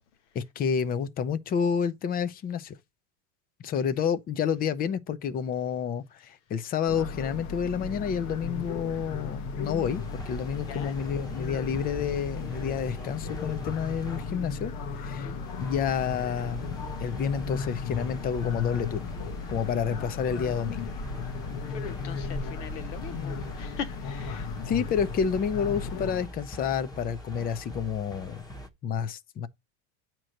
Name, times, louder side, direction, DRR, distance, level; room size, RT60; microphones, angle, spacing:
voice 1, 0.3-2.8 3.6-15.3 15.6-19.1 19.5-20.9 24.7-28.4 28.8-29.5, left 7 dB, 25° left, 0.6 m, -29 dB
sound 1, 6.9-26.3, left 5 dB, 55° left, 1.1 m, -36 dB
sound 2, 9.8-28.7, equal, 10° left, 1.0 m, -43 dB
voice 2, 21.7-24.5, left 7 dB, 90° left, 1.3 m, -40 dB
8.8 x 3.0 x 6.4 m
supercardioid pair, 140°, 34 cm